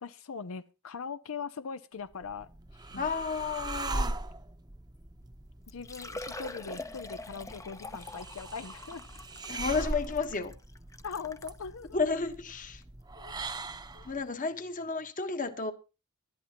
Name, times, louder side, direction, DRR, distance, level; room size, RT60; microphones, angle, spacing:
voice 1, 0.0-3.1 5.7-9.2 11.0-12.0 13.2-13.4 13.9-14.2, left 5 dB, 85° left, 0.6 m, -41 dB
sound 1, 2.1-14.2, right 2 dB, 20° right, 0.8 m, -40 dB
voice 2, 3.0-4.2 9.5-10.5 11.9-12.8 14.0-15.7, left 4 dB, 40° left, 1.2 m, -32 dB
Liquid, 5.2-5.3 5.7-11.6 12.3-12.4 12.8-12.9 14.6-14.7 14.8-14.9, left 2 dB, 15° left, 0.6 m, -44 dB
19.0 x 11.5 x 3.0 m
head